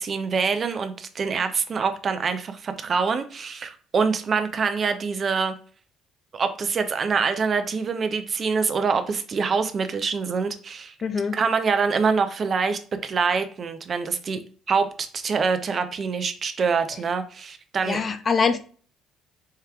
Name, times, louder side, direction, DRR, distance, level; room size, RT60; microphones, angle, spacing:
voice 1, 0.0-5.5 6.3-10.9 11.3-14.4 14.7-18.2, right 5 dB, 40° right, 8 dB, 0.5 m, -25 dB
voice 2, 11.0-11.3 17.9-18.6, left 5 dB, 40° left, 11 dB, 0.5 m, -23 dB
4.5 x 3.2 x 2.3 m, 0.42 s
figure-of-eight pair, 50°, 0 cm